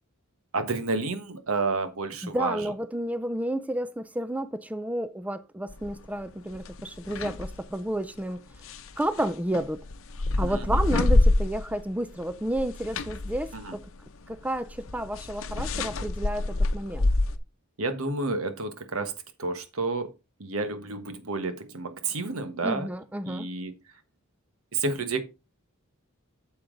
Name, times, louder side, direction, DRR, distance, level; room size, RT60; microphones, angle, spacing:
voice 1, 0.5-2.6 10.4-10.8 13.5-13.8 17.8-19.1 19.4-20.1 20.4-22.9 23.2-23.7 24.7-25.2, right 3 dB, 75° right, 1.3 m, -30 dB
voice 2, 2.2-8.7 9.0-9.8 10.4-13.9 14.3-17.1 22.6-23.5, right 1 dB, 5° right, 0.4 m, -31 dB
sound 1, 5.7-6.0 6.5-7.6 8.6-11.9 12.2-17.4, left 2 dB, 65° left, 0.8 m, -27 dB
8.9 x 7.0 x 3.8 m
head